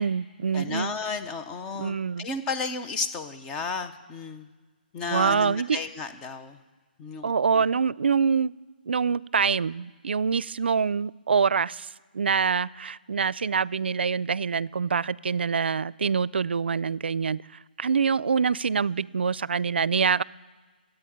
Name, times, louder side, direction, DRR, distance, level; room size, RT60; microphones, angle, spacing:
voice 1, 0.0-0.9 1.8-2.3 5.1-5.8 7.2-8.5 8.9-11.9 12.1-17.4 17.8-20.2, right 6 dB, 85° right, 0.4 m, -25 dB
voice 2, 0.5-4.5 4.9-6.6 7.0-7.6, left 4 dB, 10° left, 0.5 m, -33 dB
13.5 x 8.9 x 9.9 m
hypercardioid pair, 175°, 6 cm